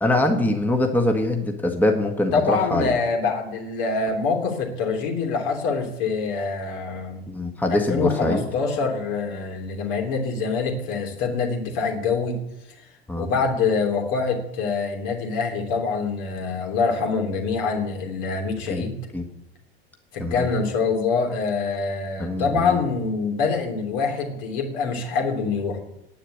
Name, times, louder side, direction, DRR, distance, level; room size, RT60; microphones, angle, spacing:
voice 1, 0.0-2.9 7.3-8.4 13.1-13.3 18.7-18.8 19.1-19.2 20.2-20.5 22.2-22.8, left 1 dB, 5° left, 4 dB, 1.7 m, -23 dB
voice 2, 2.3-7.3 7.7-12.4 13.2-19.0 20.1-25.8, left 4 dB, 55° left, 2 dB, 3.1 m, -25 dB
10.0 x 9.1 x 9.3 m, 0.83 s
figure-of-eight pair, 75°, 30 cm